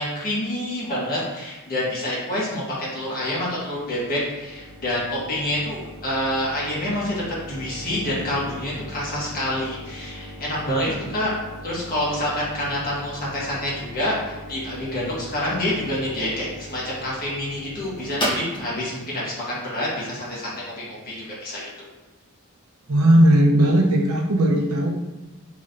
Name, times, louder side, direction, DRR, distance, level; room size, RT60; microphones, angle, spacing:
voice 1, 0.0-11.3 11.6-21.9, left 1 dB, 40° left, -6 dB, 1.4 m, -27 dB
sound 1, 3.2-20.7, equal, 20° left, 1.2 m, -38 dB
voice 2, 22.9-24.9, right 1 dB, 75° right, 1 dB, 0.7 m, -17 dB
5.1 x 3.1 x 2.6 m, 1.1 s
head